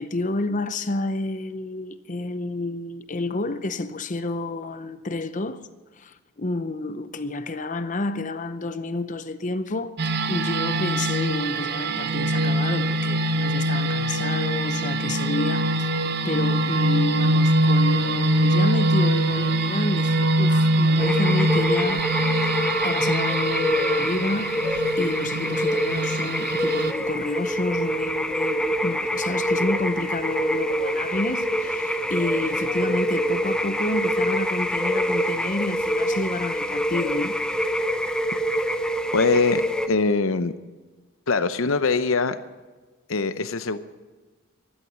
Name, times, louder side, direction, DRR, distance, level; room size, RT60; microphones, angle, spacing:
voice 1, 0.0-5.7 6.0-22.1 22.8-37.4, left 2 dB, 35° left, 0.7 m, -30 dB
sound 1, 10.0-26.9, right 1 dB, 50° right, 0.9 m, -23 dB
sound 2, 21.0-39.9, equal, 5° left, 0.7 m, -25 dB
voice 2, 39.1-39.6 39.9-40.5 41.3-42.4 43.1-43.8, left 4 dB, 75° left, 0.8 m, -22 dB
16.0 x 11.5 x 6.3 m
head